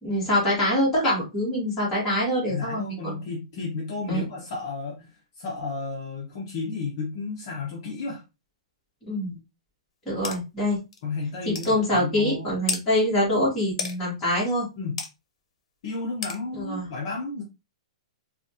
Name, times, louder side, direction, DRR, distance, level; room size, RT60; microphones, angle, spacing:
voice 1, 0.0-3.2 4.1-4.2 9.1-9.4 10.1-10.8 11.5-14.7 16.5-16.9, left 1 dB, 10° left, 2.2 m, -25 dB
voice 2, 2.5-8.2 11.0-12.6 14.8-15.0 15.8-17.4, left 4 dB, 40° left, 1.0 m, -32 dB
sound 1, 10.2-10.4 10.9-11.0 11.5-11.7 12.7-12.8 13.8-14.0 15.0-15.1 16.2-16.4, left 5 dB, 70° left, 1.0 m, -30 dB
4.0 x 2.6 x 2.8 m
hypercardioid pair, 170°, 3 cm